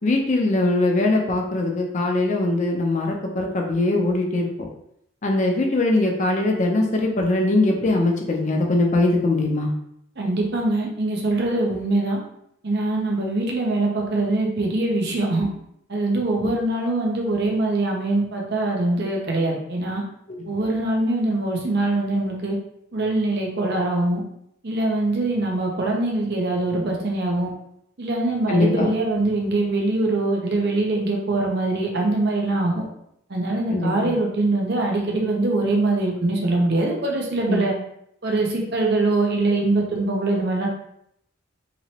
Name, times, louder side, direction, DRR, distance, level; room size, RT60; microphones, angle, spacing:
voice 1, 0.0-4.7 5.2-9.7 20.3-20.4 28.5-28.9 33.7-34.1 37.5-37.6, left 2 dB, 35° left, 1 dB, 0.5 m, -21 dB
voice 2, 10.2-12.2 12.6-15.5 15.9-20.0 20.5-22.6 22.9-24.2 24.6-27.5 28.0-32.8 33.3-37.7 38.2-40.7, right 2 dB, 55° right, 0 dB, 0.7 m, -23 dB
3.0 x 3.0 x 2.8 m, 0.74 s
head